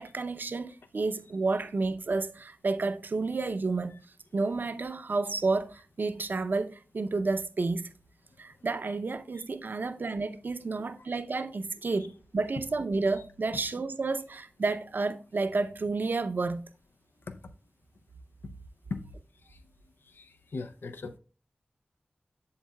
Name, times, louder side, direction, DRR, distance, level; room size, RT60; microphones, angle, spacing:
voice 1, 0.0-3.9 4.3-7.9 8.4-16.6, right 3 dB, 65° right, 0.5 m, -31 dB
voice 2, 20.5-21.2, left 3 dB, 90° left, 0.5 m, -39 dB
7.8 x 7.2 x 2.2 m
wide cardioid pair, 50°, 4 cm